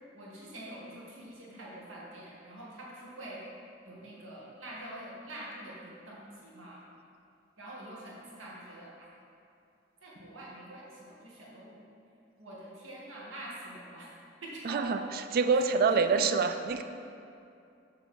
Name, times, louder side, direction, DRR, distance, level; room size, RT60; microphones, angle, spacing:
voice 1, 0.1-3.4 3.8-6.8 7.6-9.1 10.0-11.8 12.4-14.1 14.4-15.2 15.5-16.2, right 1 dB, 85° right, -5 dB, 1.5 m, -45 dB
voice 2, 14.6-15.0 15.3-16.8, right 5 dB, 50° right, 8 dB, 0.3 m, -26 dB
7.1 x 3.2 x 5.6 m, 2.6 s
head